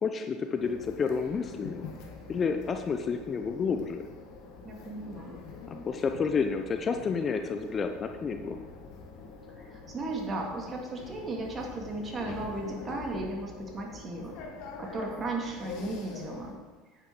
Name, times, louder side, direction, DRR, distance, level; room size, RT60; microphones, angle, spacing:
voice 1, 0.0-1.9 2.3-4.1 5.7-8.6, left 5 dB, 30° left, 6 dB, 0.8 m, -30 dB
sound 1, 0.6-16.5, left 4 dB, 55° left, 1.5 m, -45 dB
voice 2, 4.6-5.4 9.6-14.4 14.8-16.6, right 2 dB, 30° right, 0 dB, 2.5 m, -35 dB
9.9 x 9.3 x 3.9 m, 1.3 s
hypercardioid pair, 75°, 0 cm